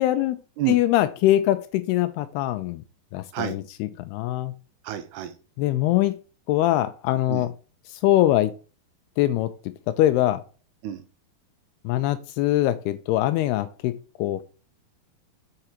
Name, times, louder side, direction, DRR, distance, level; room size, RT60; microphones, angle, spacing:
voice 1, 0.0-0.4 0.7-2.8 3.1-4.5 5.6-6.2 6.5-7.5 8.0-8.5 9.2-9.5 9.9-10.4 11.9-14.4, left 14 dB, 85° left, 2.4 m, -23 dB
voice 2, 4.9-5.3 7.3-7.5 10.8-11.0, right 12 dB, 85° right, 2.6 m, -28 dB
7.9 x 4.8 x 4.3 m
omnidirectional pair, 4.9 m